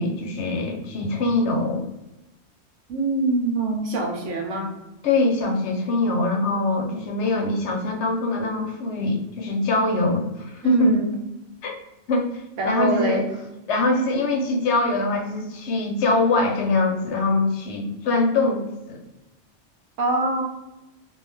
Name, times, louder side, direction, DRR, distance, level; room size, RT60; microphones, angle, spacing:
voice 1, 0.0-1.8 5.0-11.0 11.6-11.8 12.1-13.2 13.7-19.0, left 2 dB, 70° left, 2 dB, 0.9 m, -23 dB
voice 2, 2.9-4.7 10.6-11.1 12.6-13.3 20.0-20.4, right 2 dB, 80° right, 1 dB, 1.0 m, -24 dB
2.4 x 2.3 x 3.2 m, 0.96 s
omnidirectional pair, 1.2 m